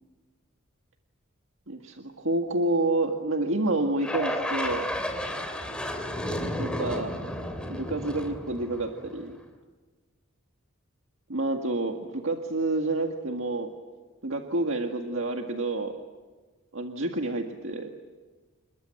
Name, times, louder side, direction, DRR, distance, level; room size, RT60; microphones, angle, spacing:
voice 1, 1.7-4.9 6.6-7.2 7.7-9.4 11.3-13.7 14.2-15.9 16.7-17.9, right 2 dB, 65° right, 3 dB, 1.9 m, -28 dB
sound 1, 4.0-9.3, left 1 dB, 5° left, 3.0 m, -32 dB
28.0 x 22.5 x 7.9 m, 1.3 s
head